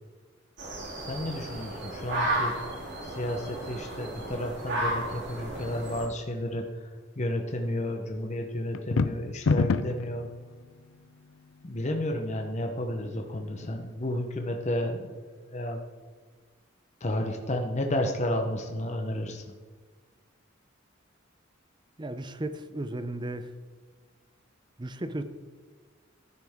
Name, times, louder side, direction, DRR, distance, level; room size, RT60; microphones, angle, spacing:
sound 1, 0.6-6.0, right 1 dB, 55° right, 3.0 m, -33 dB
voice 1, 1.0-2.5 3.0-6.9 7.2-10.3 11.6-15.2 15.5-15.8 17.0-19.5, left 1 dB, 35° left, 3 dB, 0.9 m, -32 dB
sound 2, 8.7-10.1, left 4 dB, 85° left, 0.5 m, -25 dB
voice 2, 22.0-23.5 24.8-25.2, right 1 dB, 20° right, 10 dB, 0.7 m, -35 dB
14.0 x 9.8 x 3.6 m, 1.5 s
head